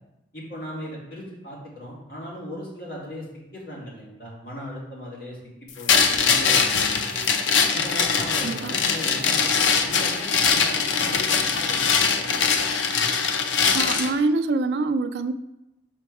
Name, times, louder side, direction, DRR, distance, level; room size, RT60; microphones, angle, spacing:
voice 1, 0.3-3.3 3.5-5.4 5.8-7.2 7.7-12.4, equal, 50° left, -5 dB, 2.2 m, -37 dB
sound 1, 5.9-14.1, left 5 dB, 85° left, 0.6 m, -22 dB
voice 2, 13.7-15.3, right 3 dB, 60° right, 11 dB, 0.3 m, -24 dB
6.0 x 4.6 x 4.7 m, 0.92 s
head